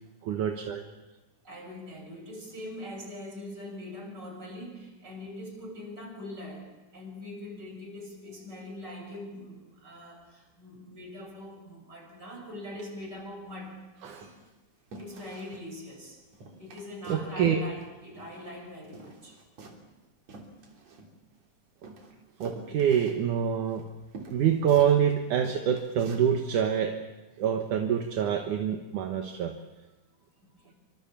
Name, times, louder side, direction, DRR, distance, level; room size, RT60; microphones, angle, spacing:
voice 1, 0.2-0.8 14.0-14.3 17.1-17.6 22.4-23.9 24.3-27.0 27.4-29.5, right 8 dB, 70° right, 4 dB, 2.8 m, -26 dB
voice 2, 1.4-13.8 15.0-16.2 16.6-19.4 30.4-30.7, left 1 dB, 30° right, 1 dB, 7.2 m, -42 dB
sound 1, 13.4-13.6 14.0-14.5 14.9-15.7 15.9-16.0 16.3-17.3 17.6-18.6 18.8-21.4 21.8-25.1 25.4-26.3 26.7-26.8, right 3 dB, 50° right, 4.4 m, -48 dB
26.0 x 25.5 x 7.4 m, 1.1 s
omnidirectional pair, 3.9 m